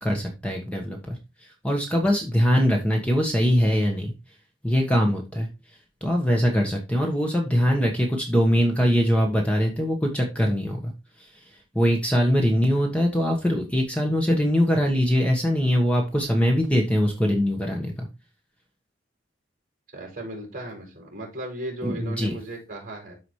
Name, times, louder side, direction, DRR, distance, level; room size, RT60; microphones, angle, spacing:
voice 1, 0.0-4.1 4.6-10.9 11.2-18.1 21.8-22.4, equal, 5° left, 1 dB, 1.3 m, -22 dB
voice 2, 19.9-23.2, right 1 dB, 45° right, -1 dB, 5.0 m, -36 dB
13.0 x 5.0 x 3.2 m, 0.28 s
head